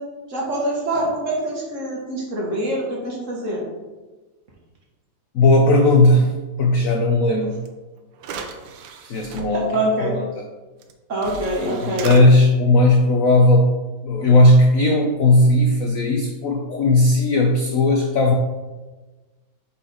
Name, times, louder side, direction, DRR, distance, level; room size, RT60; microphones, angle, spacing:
voice 1, 0.0-3.6 9.5-10.1 11.1-12.1, right 1 dB, 45° right, -2 dB, 1.4 m, -25 dB
voice 2, 5.3-6.3 6.6-7.6 9.0-10.2 11.6-13.7 14.0-18.3, left 1 dB, 75° left, 3 dB, 0.7 m, -16 dB
sound 1, 7.7-7.8 8.2-9.4 10.8-10.9 11.2-12.2, right 5 dB, 80° right, 1.4 m, -34 dB
5.6 x 4.2 x 4.8 m, 1.2 s
omnidirectional pair, 2.1 m